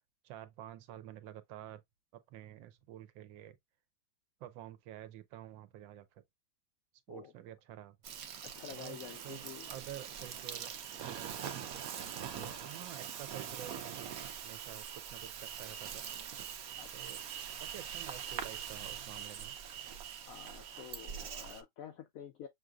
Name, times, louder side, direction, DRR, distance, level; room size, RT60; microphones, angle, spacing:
voice 1, 0.2-1.8 2.1-3.6 4.4-6.2 7.1-8.0 8.7-9.0 9.2-10.7 12.6-16.0 16.9-17.2 17.6-19.5, right 12 dB, 80° right, 1.4 m, -49 dB
Insect, 8.0-21.6, right 8 dB, 65° right, 0.9 m, -43 dB
voice 2, 8.4-9.8 16.8-17.1 20.3-22.5, left 8 dB, 80° left, 0.7 m, -49 dB
6.3 x 2.7 x 2.3 m
omnidirectional pair, 2.0 m